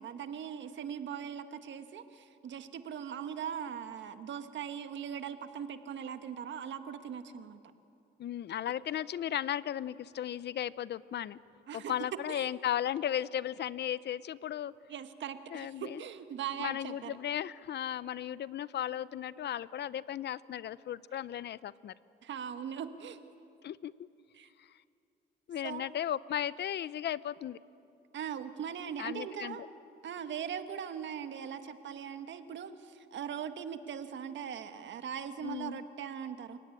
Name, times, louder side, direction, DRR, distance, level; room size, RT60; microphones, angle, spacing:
voice 1, 0.0-7.6 11.7-11.9 12.3-12.5 14.9-17.2 22.2-23.2 24.3-24.5 25.6-25.9 28.1-29.6 30.0-36.6, right 8 dB, 65° right, 8 dB, 1.6 m, -40 dB
voice 2, 8.2-11.4 11.7-14.7 15.5-16.0 16.6-21.9 23.6-23.9 25.5-27.6 29.0-29.6 35.4-35.8, left 10 dB, 60° left, 18 dB, 0.6 m, -35 dB
29.5 x 16.5 x 9.8 m, 2.7 s
cardioid pair, 90°, 20 cm